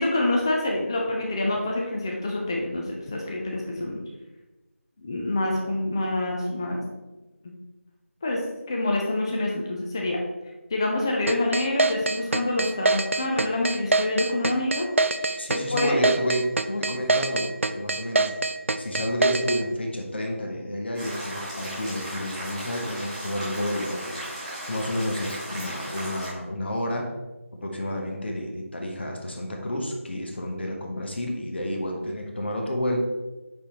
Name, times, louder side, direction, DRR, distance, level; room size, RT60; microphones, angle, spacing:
voice 1, 0.0-4.0 5.0-6.8 8.2-8.4 8.7-10.2 10.7-14.9 15.2-16.0, left 2 dB, 20° left, -1 dB, 0.5 m, -26 dB
sound 1, 11.3-19.6, right 3 dB, 65° right, 0.4 m, -24 dB
voice 2, 15.4-18.3 18.8-24.1 24.7-27.1 27.5-33.0, equal, 50° left, 1 dB, 1.0 m, -30 dB
sound 2, 20.9-26.3, right 1 dB, ahead, 1.4 m, -36 dB
9.6 x 3.7 x 3.0 m, 1.1 s
figure-of-eight pair, 170°, 8 cm